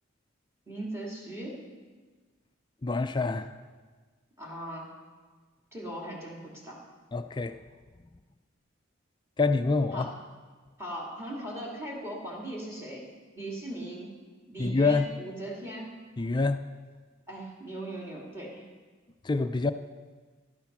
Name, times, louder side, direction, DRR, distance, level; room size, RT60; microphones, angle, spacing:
voice 1, 0.7-1.6 4.4-4.9 5.7-6.8 9.9-10.2 10.8-13.1 13.3-14.1 14.5-16.0 17.3-18.6, right 1 dB, 15° right, -3 dB, 2.4 m, -39 dB
voice 2, 2.8-3.5 7.1-7.6 9.4-10.1 14.6-15.1 16.2-16.6 19.2-19.7, left 3 dB, 20° left, 9 dB, 0.4 m, -26 dB
13.0 x 12.0 x 6.0 m, 1.4 s
head